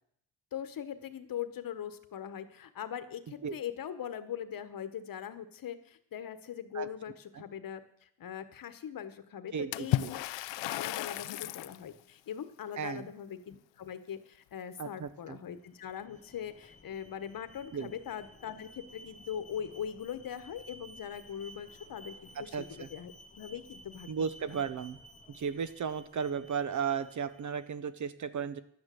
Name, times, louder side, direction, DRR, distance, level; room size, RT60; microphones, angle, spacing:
voice 1, 0.5-10.2 10.7-24.1 24.4-24.7, left 9 dB, 50° left, 11 dB, 1.2 m, -41 dB
voice 2, 9.5-10.1 12.8-13.1 14.8-15.4 17.7-17.9 22.3-22.9 24.1-25.0 25.3-28.6, right 6 dB, 40° right, 14 dB, 0.7 m, -35 dB
Water / Splash splatter, 9.7-11.8, left 15 dB, 75° left, 0.6 m, -33 dB
Alarm, 15.7-27.7, equal, 15° left, 0.7 m, -55 dB
11.5 x 9.4 x 7.7 m, 0.70 s
cardioid pair, 150°, 44 cm